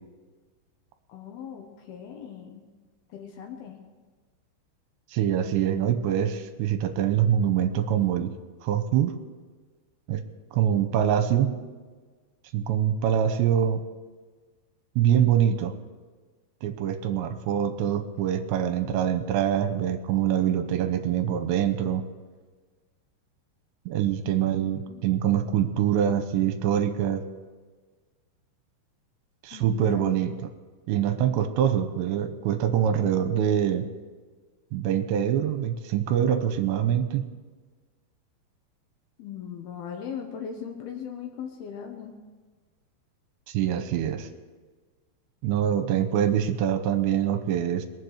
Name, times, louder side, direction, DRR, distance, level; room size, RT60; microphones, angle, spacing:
voice 1, 1.1-2.6 3.1-3.8 24.3-24.5 24.8-25.2 29.5-30.2 39.2-42.2, left 7 dB, 70° left, 3 dB, 2.6 m, -39 dB
voice 2, 5.1-8.3 8.6-9.2 10.1-10.2 10.5-11.6 12.5-13.8 15.0-15.7 16.6-22.0 23.9-27.2 29.4-30.3 30.9-33.9 34.7-37.3 43.5-44.3 45.4-47.9, right 9 dB, 80° right, 8 dB, 3.0 m, -24 dB
22.0 x 7.5 x 6.4 m, 1.4 s
omnidirectional pair, 5.3 m